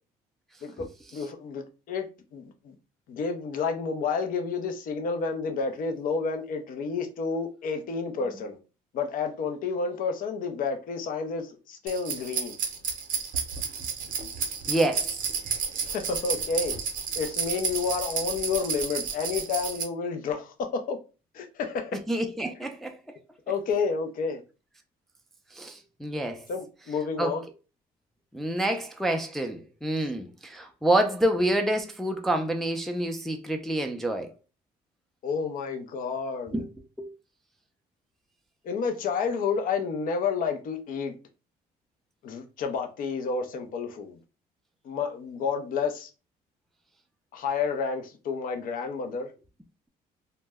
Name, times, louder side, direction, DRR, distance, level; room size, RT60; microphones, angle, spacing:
voice 1, 1.1-2.1 2.3-2.7 3.1-8.6 8.9-12.6 15.8-16.7 17.1-21.0 21.3-22.0 23.5-24.4 26.5-27.4 35.2-36.6 38.6-41.1 42.2-44.2 44.8-46.1 47.3-49.3, left 5 dB, 55° left, 0.5 m, -30 dB
sound 1, 11.9-19.8, right 6 dB, 55° right, 0.6 m, -31 dB
voice 2, 14.7-15.2 21.9-23.0 25.5-26.5 27.2-27.4 28.3-34.3 36.5-36.6 37.0-37.1, right 1 dB, ahead, 0.3 m, -27 dB
2.1 x 2.0 x 3.3 m
cardioid pair, 110°, 17 cm